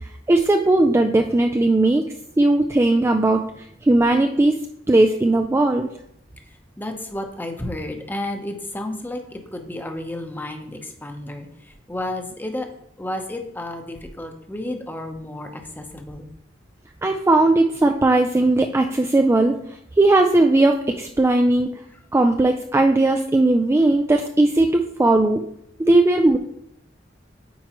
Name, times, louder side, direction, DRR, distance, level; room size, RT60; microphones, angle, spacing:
voice 1, 0.3-2.0 2.4-4.6 4.9-5.9 17.0-19.6 20.0-21.7 22.1-25.4 25.8-26.4, right 2 dB, 15° right, 4 dB, 0.3 m, -18 dB
voice 2, 6.8-12.7 13.0-16.3, left 1 dB, 10° left, 5 dB, 0.8 m, -32 dB
8.9 x 4.6 x 3.0 m, 0.74 s
head